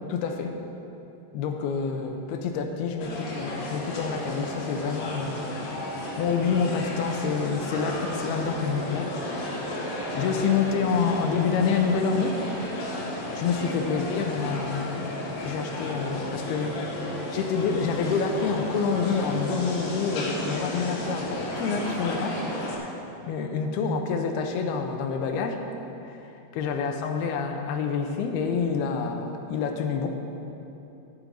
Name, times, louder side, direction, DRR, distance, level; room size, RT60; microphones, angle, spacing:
voice 1, 0.1-0.5 1.3-12.4 13.3-15.1 15.4-22.4 22.7-23.0 23.3-25.6 26.1-26.2 26.5-30.1, left 5 dB, 80° left, 4 dB, 2.8 m, -28 dB
sound 1, 3.0-22.8, left 1 dB, 50° left, 2.8 m, -33 dB
13.0 x 9.1 x 6.2 m, 2.9 s
omnidirectional pair, 4.6 m